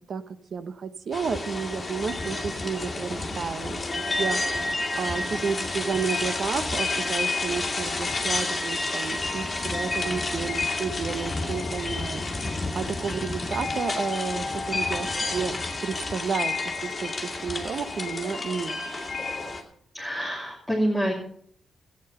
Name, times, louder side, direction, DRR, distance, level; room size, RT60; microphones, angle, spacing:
voice 1, 0.5-4.4 5.0-12.2 12.5-18.8, right 6 dB, 45° right, 12 dB, 0.8 m, -31 dB
sound 1, 1.1-19.6, left 3 dB, 20° left, 2.0 m, -30 dB
voice 2, 19.9-21.1, equal, ahead, -8 dB, 2.6 m, -26 dB
15.5 x 8.8 x 5.5 m, 0.62 s
wide cardioid pair, 170°, 0 cm